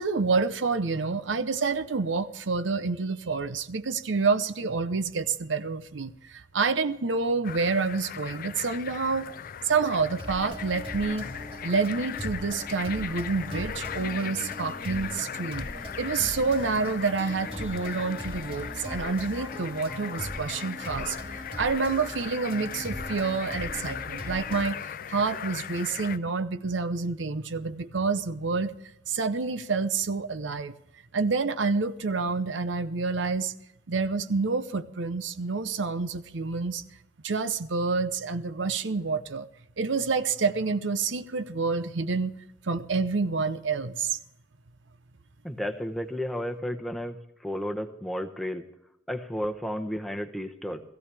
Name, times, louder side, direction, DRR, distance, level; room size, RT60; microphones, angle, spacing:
voice 1, 0.0-9.3 9.6-11.3 11.6-15.7 16.0-28.7 29.1-30.7 31.1-33.5 33.9-36.8 37.2-39.5 39.8-42.3 42.6-44.2, right 4 dB, 80° right, 0.8 m, -28 dB
sound 1, 7.4-26.2, left 8 dB, 50° left, 0.4 m, -38 dB
sound 2, 10.2-24.6, equal, 30° right, 2.5 m, -40 dB
voice 2, 45.4-47.2 47.4-48.6 49.1-50.8, equal, ahead, 0.9 m, -32 dB
17.0 x 15.5 x 3.4 m
head